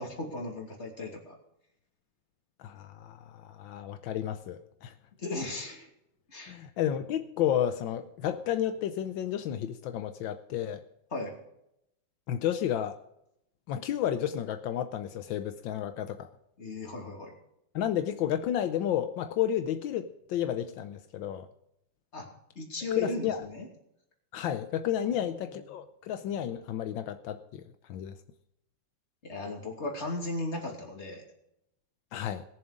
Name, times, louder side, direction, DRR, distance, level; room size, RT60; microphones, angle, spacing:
voice 1, 0.0-1.4 5.2-5.9 6.3-6.6 11.1-11.3 16.6-17.3 22.1-22.3 22.5-23.7 25.0-25.7 29.2-31.2, left 2 dB, 35° left, 1 dB, 3.0 m, -36 dB
voice 2, 2.6-4.9 6.5-10.8 12.3-13.0 13.7-16.3 17.7-21.5 23.0-23.4 24.3-27.6 27.9-28.1 32.1-32.4, left 10 dB, 85° left, 9 dB, 1.4 m, -31 dB
20.5 x 7.3 x 5.0 m, 0.80 s
omnidirectional pair, 2.1 m